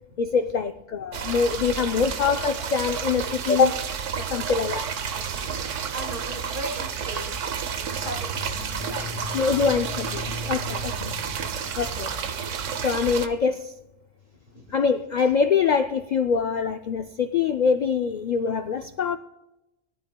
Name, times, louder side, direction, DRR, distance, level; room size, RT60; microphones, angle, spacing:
voice 1, 0.2-3.8 4.2-4.9 9.3-11.1 11.8-12.1 12.5-12.6 12.8-13.7 14.7-19.2, left 5 dB, 75° left, 8 dB, 0.4 m, -24 dB
sound 1, 1.1-13.3, right 7 dB, 80° right, 1.1 m, -31 dB
voice 2, 5.3-7.3 7.7-9.7 11.6-11.8 14.5-14.6, right 1 dB, 45° right, 3 dB, 2.0 m, -38 dB
sound 2, 7.8-12.6, left 3 dB, ahead, 3.9 m, -39 dB
20.0 x 12.0 x 2.2 m, 0.96 s
omnidirectional pair, 1.3 m